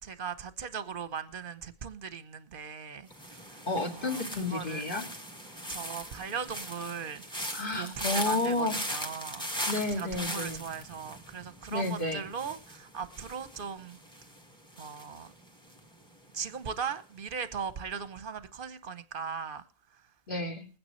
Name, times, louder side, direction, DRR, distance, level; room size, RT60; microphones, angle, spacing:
voice 1, 0.0-3.6 4.0-4.8 5.7-9.5 10.0-14.0 14.8-15.3 16.3-19.6 19.9-20.0, right 6 dB, 45° right, 1.1 m, -39 dB
sound 1, 3.1-16.1 16.4-16.9, equal, 5° left, 1.9 m, -40 dB
voice 2, 3.7-5.0 7.5-8.8 9.7-10.6 11.7-12.2 20.3-20.7, left 2 dB, 40° left, 2.3 m, -31 dB
21.0 x 9.5 x 3.1 m
omnidirectional pair, 1.4 m